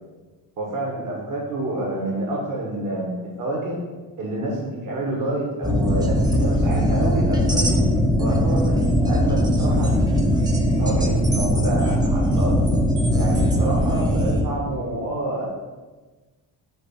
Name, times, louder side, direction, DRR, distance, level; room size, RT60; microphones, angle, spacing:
voice 1, 0.6-3.8 4.2-7.8 8.2-10.5 10.8-12.6 13.1-15.4, right 1 dB, 50° right, -3 dB, 1.6 m, -28 dB
sound 1, 5.6-14.4, equal, 10° right, 0.9 m, -20 dB
7.7 x 2.6 x 5.8 m, 1.3 s
cardioid pair, 105°, 41 cm